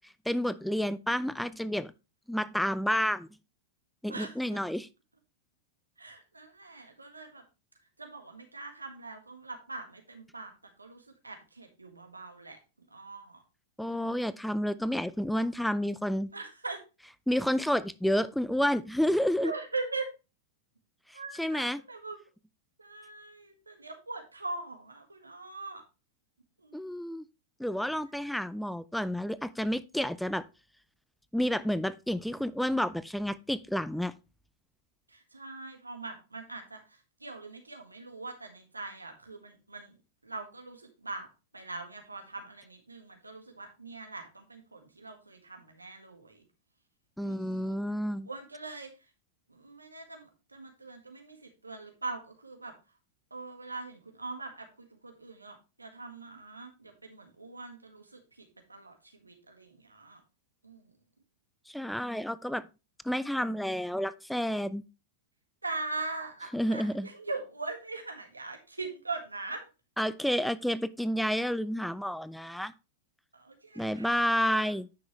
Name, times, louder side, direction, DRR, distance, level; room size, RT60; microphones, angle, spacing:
voice 1, 0.3-1.9 2.3-3.3 4.0-4.9 13.8-16.3 17.3-19.5 21.1-21.8 26.7-27.2 27.6-30.4 31.3-34.1 47.2-48.3 61.7-62.6 63.0-64.8 66.5-67.1 70.0-72.7 73.8-74.9, equal, ahead, 0.4 m, -30 dB
voice 2, 6.0-7.4 8.0-10.5 10.8-12.6 12.9-13.4 13.8-14.3 16.3-16.8 19.4-20.1 21.1-22.2 22.8-25.8 26.6-26.8 35.1-40.0 40.2-41.3 41.5-46.4 47.2-47.8 48.1-48.9 49.5-52.7 53.3-60.2 60.6-60.9 65.6-69.6 73.3-74.7, right 3 dB, 90° right, 1.7 m, -42 dB
9.7 x 6.2 x 3.2 m
figure-of-eight pair, 95°, 0 cm